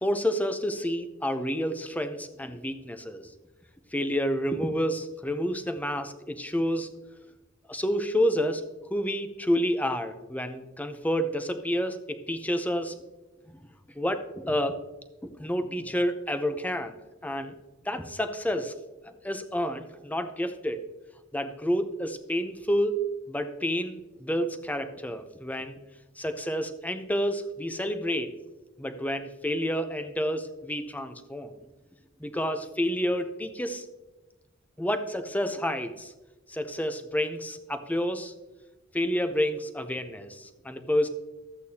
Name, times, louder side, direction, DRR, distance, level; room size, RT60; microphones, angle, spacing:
voice 1, 0.0-3.3 3.9-6.9 7.7-8.6 8.9-13.0 13.5-13.6 14.0-14.8 15.4-17.0 17.2-17.5 17.8-18.7 19.2-20.8 21.3-25.8 26.2-28.3 28.8-31.5 32.2-33.9 34.8-36.1 36.5-38.3 38.9-41.1, equal, 10° left, 8 dB, 0.5 m, -29 dB
13.0 x 8.3 x 2.8 m, 1.1 s
head